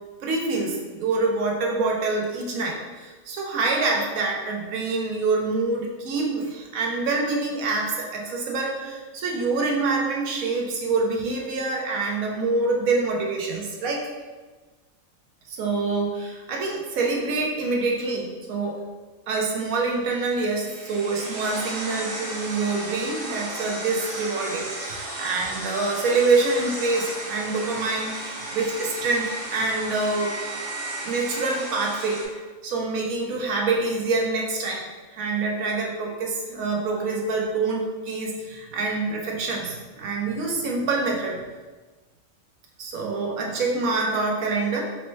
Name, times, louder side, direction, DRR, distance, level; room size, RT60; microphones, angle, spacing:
voice 1, 0.2-14.1 15.5-18.8 19.3-30.4 31.0-32.2 32.6-34.9 35.1-41.4 42.8-44.8, right 3 dB, 90° right, 0 dB, 1.2 m, -26 dB
sound 1, 20.2-32.3, right 2 dB, 45° right, 0.7 m, -34 dB
4.2 x 2.1 x 4.5 m, 1.3 s
omnidirectional pair, 1.4 m